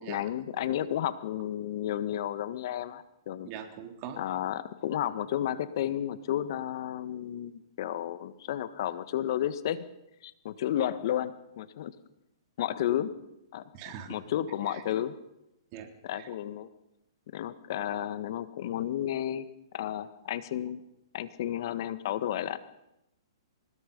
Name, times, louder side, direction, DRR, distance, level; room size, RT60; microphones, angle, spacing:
voice 1, 0.0-3.5 4.2-9.8 10.2-11.9 12.6-13.1 13.5-13.6 14.0-15.1 16.0-16.7 17.3-19.5 19.7-20.8 21.1-22.6, left 11 dB, 55° left, 12 dB, 1.6 m, -32 dB
voice 2, 3.4-4.2 13.7-14.1 14.7-14.8 15.7-16.3, right 9 dB, 40° right, 4 dB, 3.4 m, -42 dB
25.0 x 20.5 x 5.4 m, 0.89 s
hypercardioid pair, 130°, 3 cm